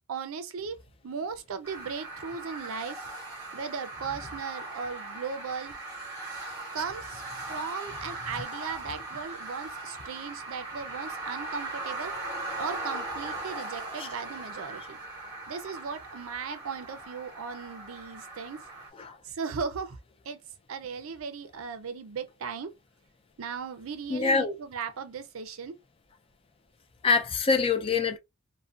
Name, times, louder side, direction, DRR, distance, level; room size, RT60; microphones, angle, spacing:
voice 1, 0.1-0.8 1.0-3.0 3.5-5.7 6.7-7.2 7.5-12.1 12.6-15.0 15.5-18.6 19.2-20.0 20.3-20.4 20.7-22.7 23.4-25.8, right 5 dB, 70° right, 0.5 m, -37 dB
sound 1, 1.6-18.9, right 2 dB, 15° right, 1.1 m, -39 dB
voice 2, 24.1-24.6 27.0-28.2, left 4 dB, 25° left, 0.3 m, -25 dB
2.5 x 2.1 x 2.4 m
head